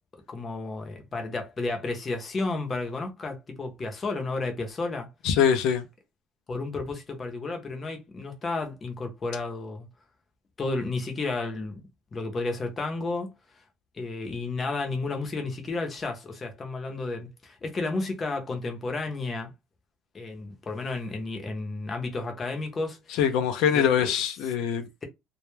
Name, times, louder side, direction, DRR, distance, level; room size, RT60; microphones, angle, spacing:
voice 1, 0.3-5.1 6.5-9.9 10.6-11.8 12.1-13.3 14.0-19.5 20.1-23.2 23.7-24.1, left 3 dB, 20° left, 0.6 m, -32 dB
voice 2, 5.2-5.8 23.2-24.9, left 8 dB, 70° left, 0.4 m, -23 dB
2.1 x 2.0 x 3.0 m
cardioid pair, 155°, 0 cm